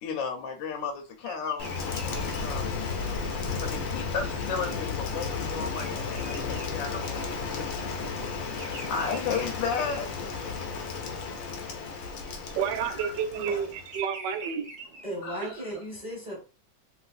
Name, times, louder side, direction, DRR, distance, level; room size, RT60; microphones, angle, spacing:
voice 1, 0.0-2.7 3.6-7.7 8.4-10.1 13.0-13.1 15.2-15.5, left 5 dB, 80° left, 1.3 m, -34 dB
Bird vocalization bird call bird song, 1.2-7.6 7.9-10.8 11.2-11.6 12.6-15.5, right 2 dB, 55° right, 0.5 m, -46 dB
Rain, 1.6-14.0, left 5 dB, 65° left, 0.8 m, -33 dB
voice 2, 12.2-15.0, right 7 dB, 75° right, 1.2 m, -31 dB
voice 3, 15.0-16.4, equal, 5° right, 1.0 m, -36 dB
3.1 x 3.1 x 2.4 m
omnidirectional pair, 2.1 m